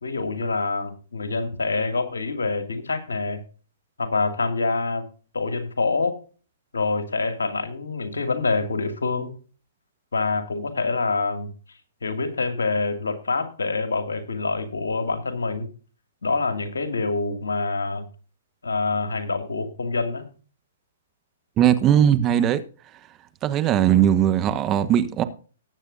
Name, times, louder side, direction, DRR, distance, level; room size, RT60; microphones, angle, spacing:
voice 1, 0.0-3.4 4.0-5.0 5.3-6.2 6.7-9.3 10.1-11.5 12.0-15.7 16.2-18.1 18.6-20.2, left 3 dB, 80° left, 2.4 m, -26 dB
voice 2, 21.6-22.6 23.4-25.2, right 10 dB, 25° right, 1.1 m, -19 dB
19.5 x 8.3 x 2.7 m
figure-of-eight pair, 120°, 0 cm